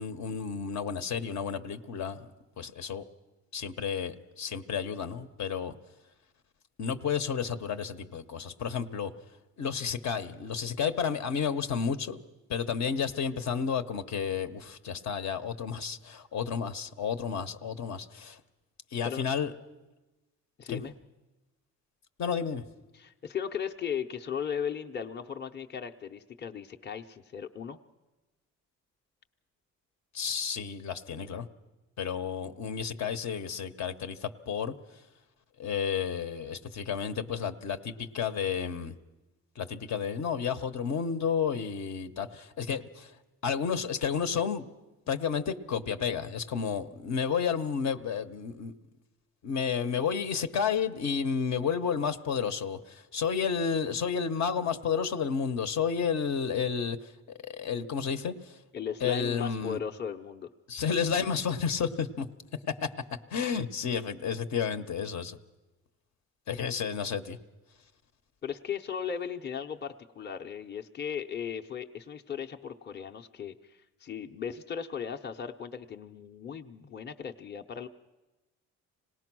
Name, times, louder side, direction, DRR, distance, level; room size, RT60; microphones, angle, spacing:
voice 1, 0.0-2.3 2.6-3.0 3.5-5.7 6.8-9.1 9.6-12.2 12.5-18.4 18.9-19.5 20.7-20.8 22.2-22.6 30.1-31.5 32.0-34.7 35.6-38.9 39.6-43.1 43.4-44.6 45.1-48.7 49.4-57.1 57.4-58.6 59.0-59.8 60.7-62.3 62.7-62.9 63.3-65.4 66.5-67.4, left 6 dB, 65° left, 8 dB, 1.0 m, -31 dB
voice 2, 20.6-20.9 22.9-27.8 58.7-60.5 68.4-77.9, left 7 dB, 35° left, 3 dB, 0.8 m, -37 dB
26.0 x 18.5 x 6.2 m, 1.1 s
cardioid pair, 90°, 30 cm